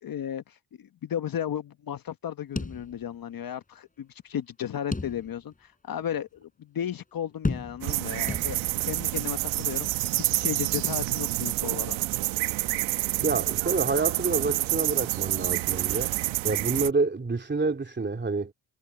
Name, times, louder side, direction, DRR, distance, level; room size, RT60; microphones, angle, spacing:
voice 1, 0.0-12.0, left 9 dB, 50° left, 1.2 m, -35 dB
sound 1, 2.6-3.4 3.7-3.8 4.9-5.6 6.1-6.2 7.4-8.0 8.3-8.9, left 3 dB, 15° left, 5.5 m, -33 dB
sound 2, 7.8-16.9, right 17 dB, 80° right, 1.1 m, -28 dB
voice 2, 13.2-16.1 16.4-18.5, right 3 dB, 25° right, 3.2 m, -28 dB
supercardioid pair, 80°, 46 cm